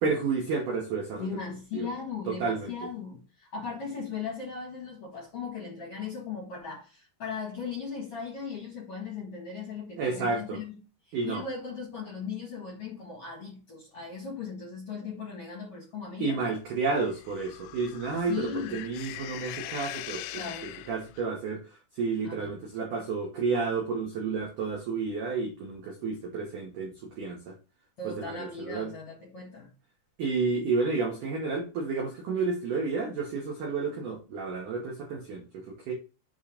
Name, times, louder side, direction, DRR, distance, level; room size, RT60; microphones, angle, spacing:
voice 1, 0.0-1.3 1.7-1.9 2.3-2.7 10.0-10.6 11.1-11.4 16.2-20.4 20.9-27.6 28.0-28.9 30.2-35.9, right 4 dB, 90° right, 1.8 m, -31 dB
voice 2, 1.2-10.8 11.1-16.6 18.3-18.8 20.3-20.7 22.2-22.5 28.0-29.7, left 5 dB, 65° left, 1.4 m, -38 dB
sound 1, 17.0-21.3, left 16 dB, 85° left, 2.7 m, -41 dB
8.1 x 3.1 x 5.0 m
omnidirectional pair, 5.6 m